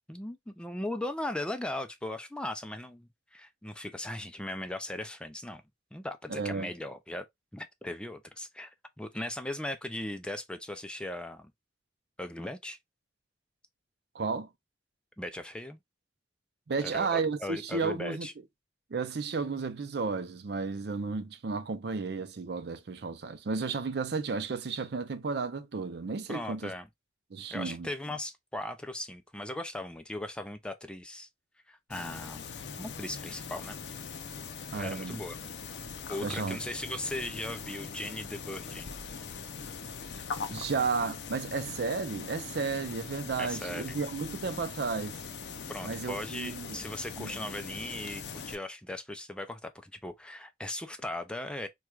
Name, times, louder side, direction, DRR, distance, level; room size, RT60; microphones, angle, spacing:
voice 1, 0.0-5.6 5.9-7.3 7.5-11.5 12.2-12.8 15.2-15.8 16.8-18.3 26.3-26.9 27.5-31.3 31.7-32.4 32.8-33.8 34.7-35.4 36.1-38.9 43.4-44.0 45.7-51.7, left 1 dB, 5° left, 0.3 m, -38 dB
voice 2, 6.3-6.7 14.1-14.5 16.7-18.3 18.9-26.7 27.3-27.9 34.7-35.2 36.2-36.6 40.1-45.2 45.8-46.8 47.2-47.4, right 4 dB, 65° right, 0.5 m, -33 dB
sound 1, 31.9-48.6, left 5 dB, 70° left, 0.5 m, -41 dB
4.5 x 2.3 x 2.3 m
head